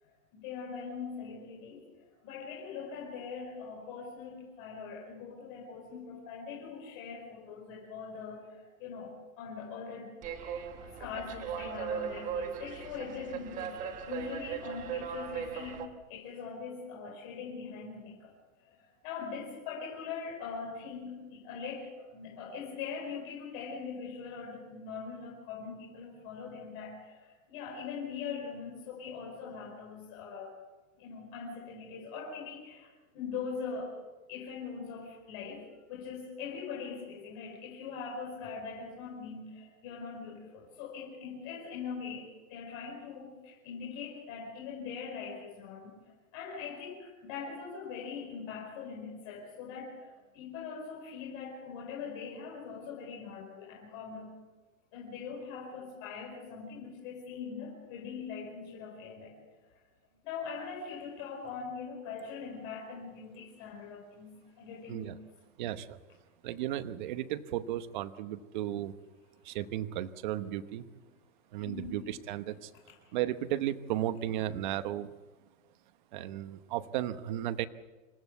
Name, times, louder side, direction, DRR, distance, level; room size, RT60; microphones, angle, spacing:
voice 1, 0.0-10.1 10.8-18.3 18.6-30.5 31.0-32.9 33.1-33.9 34.3-54.3 54.9-59.8 60.2-65.1 71.6-72.0 72.9-73.1, left 5 dB, 35° left, -3 dB, 5.2 m, -42 dB
sound 1, 10.2-15.9, right 7 dB, 20° right, 1.3 m, -38 dB
voice 2, 65.6-66.0 66.4-68.9 69.4-70.8 71.5-72.7 73.1-75.1 76.1-77.7, right 12 dB, 35° right, 11 dB, 1.0 m, -34 dB
27.0 x 15.0 x 8.2 m, 1.2 s
supercardioid pair, 170°, 40 cm